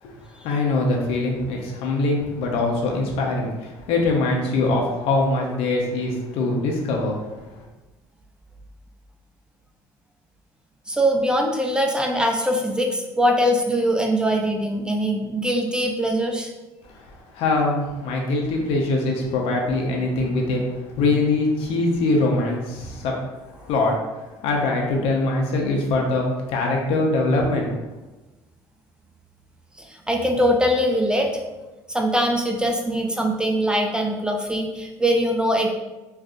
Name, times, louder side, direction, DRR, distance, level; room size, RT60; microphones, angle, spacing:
voice 1, 0.0-7.6 16.8-23.2 23.6-27.7, left 2 dB, 65° left, 0 dB, 0.6 m, -23 dB
voice 2, 10.9-16.5 29.8-31.4 31.9-35.7, equal, 10° right, 1 dB, 0.3 m, -22 dB
3.3 x 2.5 x 2.5 m, 1.1 s
cardioid pair, 110°, 10 cm